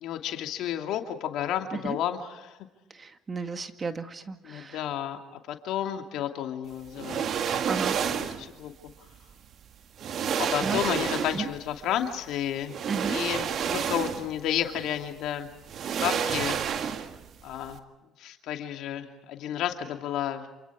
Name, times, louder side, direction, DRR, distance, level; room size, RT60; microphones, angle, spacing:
voice 1, 0.0-2.6 4.4-5.2 5.5-7.2 8.2-8.7 10.4-12.8 13.1-13.5 13.7-15.5 16.0-16.6 17.4-17.8 18.2-20.5, left 10 dB, 70° left, 5 dB, 2.6 m, -31 dB
voice 2, 2.9-4.8 7.7-8.0 10.3-10.8 11.3-11.5 12.9-13.2, right 4 dB, 35° right, 8 dB, 2.0 m, -34 dB
sound 1, 7.0-8.5 9.5-9.6 10.0-11.6 12.7-14.4 14.7-14.9 15.7-17.3 17.6-17.7, right 7 dB, 60° right, 2.0 m, -29 dB
28.0 x 28.0 x 4.9 m, 1.0 s
supercardioid pair, 70°, 0 cm